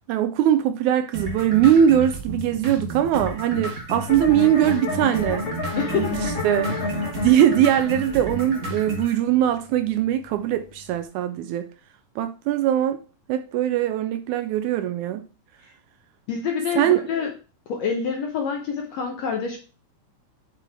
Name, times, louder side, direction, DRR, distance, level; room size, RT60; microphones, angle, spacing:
voice 1, 0.1-5.5 5.8-7.0 7.2-11.7 12.2-13.0 13.3-15.2 16.8-17.0, right 10 dB, 80° right, 1.7 m, -21 dB
sound 1, 1.1-9.1, right 1 dB, 45° right, 1.0 m, -32 dB
sound 2, 4.1-11.0, left 3 dB, 45° left, 2.3 m, -31 dB
voice 2, 5.8-6.2 16.3-17.3 17.7-19.6, left 6 dB, 70° left, 1.7 m, -27 dB
7.3 x 5.4 x 3.4 m
omnidirectional pair, 3.9 m